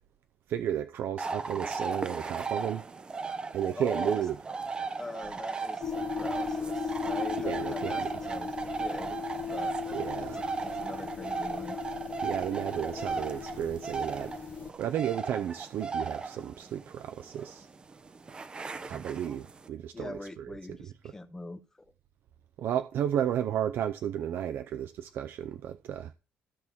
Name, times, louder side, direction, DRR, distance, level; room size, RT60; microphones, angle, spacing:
voice 1, 0.5-2.9 3.5-4.4 4.8-4.9 7.4-8.1 9.9-10.4 12.2-14.4 14.8-17.7 18.9-20.1 20.4-20.5 22.6-26.1, right 10 dB, 60° right, 0.6 m, -33 dB
sound 1, 1.2-19.7, right 4 dB, 20° right, 0.7 m, -36 dB
voice 2, 3.7-4.2 5.0-9.8 10.2-11.8 19.9-21.9, left 2 dB, 10° left, 0.8 m, -43 dB
sound 2, 5.8-14.7, left 7 dB, 40° left, 0.7 m, -37 dB
15.0 x 6.2 x 3.6 m
cardioid pair, 155°, 4 cm